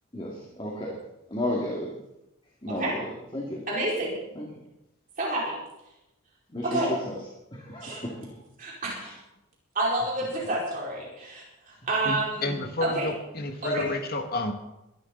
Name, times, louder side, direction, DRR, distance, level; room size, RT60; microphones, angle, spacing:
voice 1, 0.1-1.0 1.3-1.9 2.6-3.0 3.3-3.6 4.4-4.5 6.5-7.2 7.5-8.3 9.0-9.1, left 1 dB, 25° left, -2 dB, 2.3 m, -32 dB
voice 2, 3.7-4.2 5.2-5.6 6.6-6.9 7.8-8.0 8.6-9.1 9.7-12.5 12.8-13.1 13.6-13.8, right 1 dB, 35° right, -5 dB, 5.0 m, -29 dB
voice 3, 12.1-14.5, left 2 dB, 45° left, 5 dB, 1.7 m, -31 dB
23.0 x 12.0 x 4.0 m, 0.90 s
head